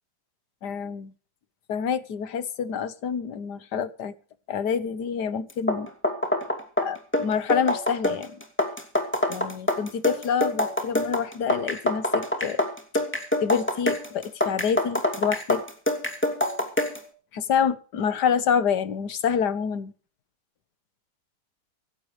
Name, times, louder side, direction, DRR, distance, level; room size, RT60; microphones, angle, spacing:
voice 1, 0.6-1.1 1.7-4.1 4.5-5.9 6.8-8.4 9.3-12.6 13.4-15.6 17.3-19.9, left 7 dB, 70° left, 1.8 m, -27 dB
sound 1, 5.5-17.1, left 1 dB, 5° left, 2.5 m, -26 dB
25.0 x 11.5 x 3.3 m
omnidirectional pair, 1.8 m